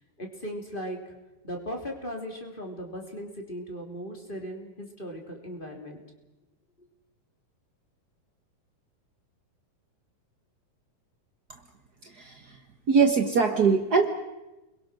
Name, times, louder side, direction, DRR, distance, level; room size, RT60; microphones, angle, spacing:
voice 1, 0.2-1.0 1.4-6.0, equal, 15° left, 2 dB, 3.2 m, -37 dB
voice 2, 12.0-12.6 12.9-14.1, right 5 dB, 90° right, 5 dB, 0.8 m, -22 dB
30.0 x 22.0 x 6.3 m, 1.0 s
omnidirectional pair, 4.0 m